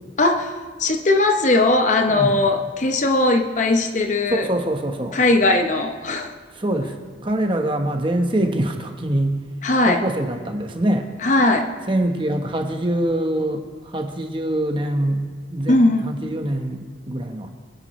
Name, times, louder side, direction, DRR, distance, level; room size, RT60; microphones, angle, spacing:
voice 1, 0.2-4.5 5.1-6.3 9.6-10.1 11.2-11.7 15.7-16.1, left 2 dB, 40° left, 6 dB, 0.8 m, -19 dB
voice 2, 2.1-2.4 4.3-5.2 6.5-7.0 7.2-9.4 9.8-11.1 11.9-15.8 16.0-17.5, right 1 dB, 25° right, 4 dB, 1.1 m, -24 dB
24.0 x 10.5 x 3.1 m, 1.4 s
head